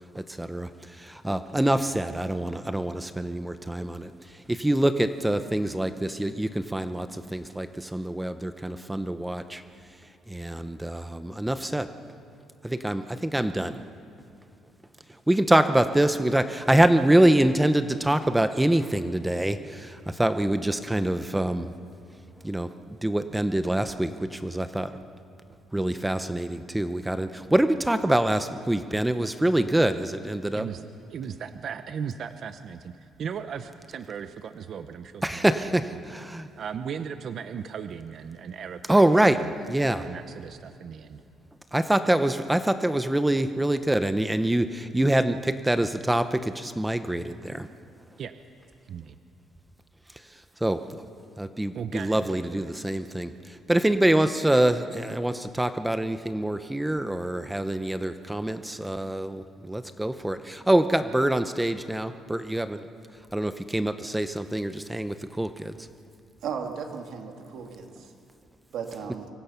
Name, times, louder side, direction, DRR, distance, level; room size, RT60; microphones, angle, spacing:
voice 1, 0.1-9.6 10.3-11.9 12.6-13.8 15.3-21.7 22.4-24.9 25.7-30.7 35.2-36.5 38.9-39.4 39.7-40.1 41.7-47.7 50.6-50.8 51.4-62.9 63.3-65.9, right 1 dB, 5° right, 10 dB, 0.7 m, -25 dB
voice 2, 30.5-36.0 36.6-39.0 39.3-39.5 40.0-41.2 48.2-48.3 48.8-49.2 51.7-52.7, right 7 dB, 50° right, 10 dB, 0.8 m, -37 dB
voice 3, 66.4-68.1 68.7-69.3, right 6 dB, 65° right, 3 dB, 2.6 m, -35 dB
25.0 x 24.0 x 5.8 m, 2.6 s
cardioid pair, 135°, 0 cm